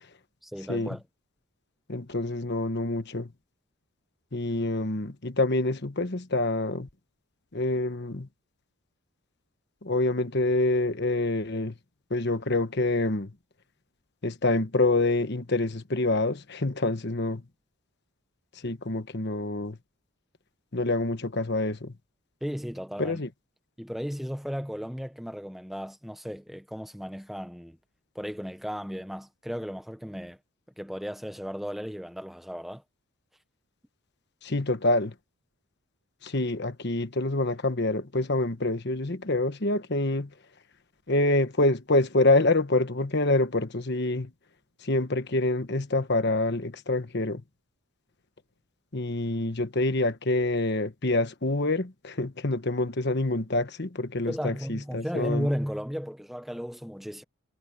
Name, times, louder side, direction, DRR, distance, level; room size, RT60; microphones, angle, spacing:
voice 1, 0.4-1.0 22.4-23.2 23.8-27.8 28.1-30.4 30.8-32.8 54.3-57.2, equal, ahead, 1.0 m, -35 dB
voice 2, 1.9-3.3 4.3-6.9 7.5-8.3 9.8-11.7 12.1-13.3 14.2-17.4 18.6-19.8 20.7-21.9 23.0-23.3 34.4-35.1 36.2-40.3 41.1-44.3 44.8-47.4 48.9-55.5, left 2 dB, 50° left, 1.3 m, -26 dB
head